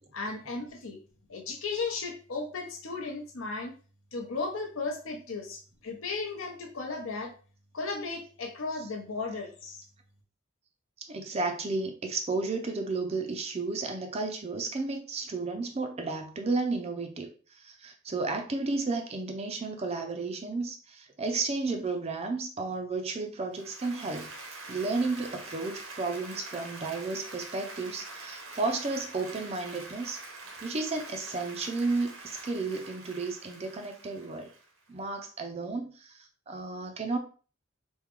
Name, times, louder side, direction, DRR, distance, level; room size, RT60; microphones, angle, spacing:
voice 1, 0.1-1.0 1.3-3.7 4.1-7.3 7.7-9.9, left 3 dB, 75° left, 0.8 m, -35 dB
voice 2, 11.0-24.3 24.7-30.2 30.6-34.5 34.9-37.2, right 3 dB, 30° right, 0.4 m, -33 dB
Applause, 23.5-34.9, right 3 dB, 85° right, 0.9 m, -45 dB
3.6 x 2.2 x 3.0 m
head